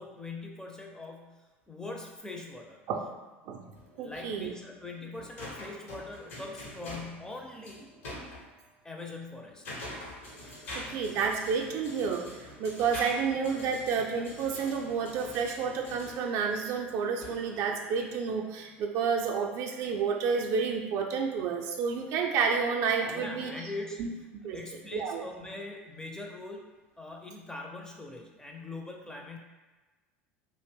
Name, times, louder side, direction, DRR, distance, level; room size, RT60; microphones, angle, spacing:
voice 1, 0.0-2.8 4.0-7.9 8.8-9.6 23.1-24.0 24.5-26.7 27.0-29.4, left 2 dB, 10° left, 1 dB, 0.4 m, -42 dB
sound 1, 3.7-8.5 9.2-18.2, left 1 dB, 75° left, 0.8 m, -45 dB
voice 2, 4.0-4.5 10.7-23.5 24.0-24.1 24.4-24.6 24.9-25.2, right 6 dB, 50° right, 1 dB, 0.4 m, -30 dB
2.5 x 2.0 x 3.4 m, 1.2 s
hypercardioid pair, 75°, 7 cm